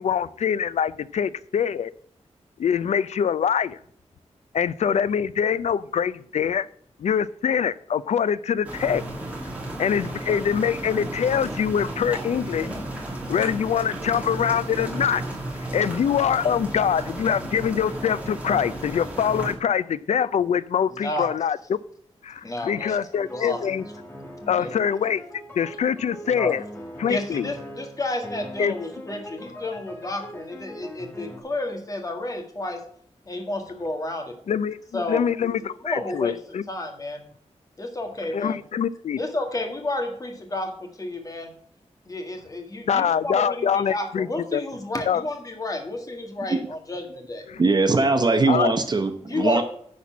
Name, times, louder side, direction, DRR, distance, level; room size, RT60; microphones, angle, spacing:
voice 1, 0.0-1.9 2.6-3.8 4.5-6.7 7.0-9.0 9.8-12.7 13.3-15.2 15.7-21.8 22.2-23.8 24.5-25.2 25.6-26.6 27.0-27.5 28.6-28.7 34.5-36.6 38.3-39.2 42.9-44.3 44.5-44.6 45.1-45.2 47.5-47.6 48.5-48.7, left 8 dB, 80° left, 18 dB, 0.4 m, -24 dB
sound 1, 8.6-19.5, right 1 dB, 10° right, 2.3 m, -33 dB
voice 2, 21.0-21.3 22.4-23.0 23.3-23.7 24.4-24.8 26.3-26.5 27.1-32.8 33.3-34.3 34.9-36.4 36.7-37.2 37.8-38.6 39.2-41.5 42.1-47.4 48.5-48.6 49.3-49.6, left 2 dB, 30° left, 4 dB, 1.7 m, -31 dB
sound 2, 22.8-31.4, equal, 15° left, 1.4 m, -41 dB
voice 3, 47.6-49.6, right 3 dB, 40° right, 7 dB, 0.8 m, -20 dB
10.5 x 4.2 x 7.2 m, 0.64 s
wide cardioid pair, 155°, 11 cm